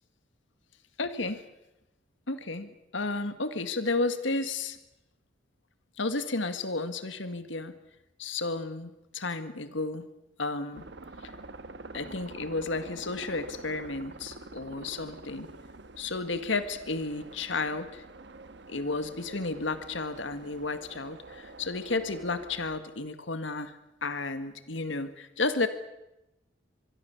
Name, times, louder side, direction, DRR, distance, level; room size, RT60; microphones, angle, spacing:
voice 1, 1.0-1.4 2.3-4.8 6.0-7.7 8.2-10.1 10.4-10.8 11.2-11.3 11.9-15.5 16.0-18.0 18.7-23.7 24.0-25.7, left 3 dB, 80° left, 10 dB, 1.8 m, -32 dB
sound 1, 10.7-22.8, right 2 dB, 65° right, 1.2 m, -47 dB
25.5 x 22.0 x 7.1 m, 0.92 s
head